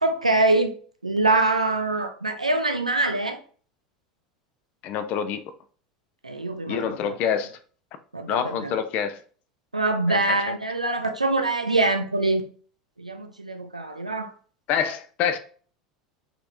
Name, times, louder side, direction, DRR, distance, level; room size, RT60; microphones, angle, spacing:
voice 1, 0.0-0.7 1.0-3.4 6.2-7.2 8.1-8.7 9.7-12.4 13.0-14.3, right 2 dB, 90° right, 0.4 m, -24 dB
voice 2, 4.8-5.4 6.7-7.5 8.3-9.2 10.1-10.4 14.7-15.4, left 8 dB, 45° left, 0.4 m, -26 dB
4.3 x 2.9 x 2.4 m
figure-of-eight pair, 80°, 4 cm